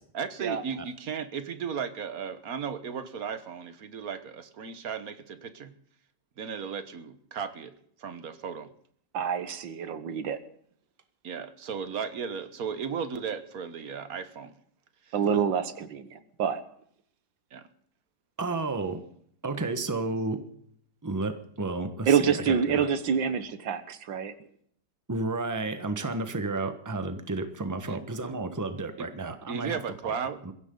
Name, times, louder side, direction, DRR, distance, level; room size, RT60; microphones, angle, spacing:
voice 1, 0.1-5.7 6.4-7.7 8.0-8.7 11.2-14.5 15.0-15.1 17.5-17.6 27.9-28.0 29.0-29.1 29.5-30.4, right 6 dB, 55° right, 11 dB, 1.6 m, -35 dB
voice 2, 9.1-10.4 15.1-16.6 22.1-24.3, right 7 dB, 90° right, 12 dB, 2.0 m, -27 dB
voice 3, 18.4-19.0 19.4-20.4 21.0-22.9 25.1-30.1, right 3 dB, 10° right, 8 dB, 1.2 m, -32 dB
22.0 x 16.0 x 3.9 m, 0.65 s
omnidirectional pair, 2.0 m